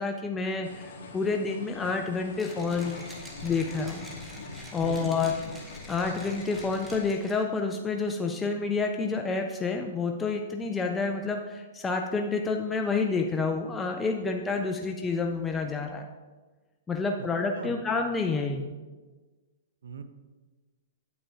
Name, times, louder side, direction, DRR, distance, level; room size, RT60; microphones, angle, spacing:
voice 1, 0.0-3.0 3.4-4.1 4.7-5.3 5.9-16.1 16.9-18.7, left 4 dB, 15° left, 3 dB, 0.5 m, -29 dB
sound 1, 0.6-7.1, left 2 dB, 65° left, 1.9 m, -43 dB
Mechanisms, 2.3-7.6, equal, 5° right, 1.4 m, -47 dB
voice 2, 4.8-5.3 17.2-17.3 17.6-17.8 19.8-20.0, right 5 dB, 75° right, 9 dB, 0.7 m, -39 dB
8.6 x 8.6 x 2.8 m, 1.3 s
hypercardioid pair, 125°, 0 cm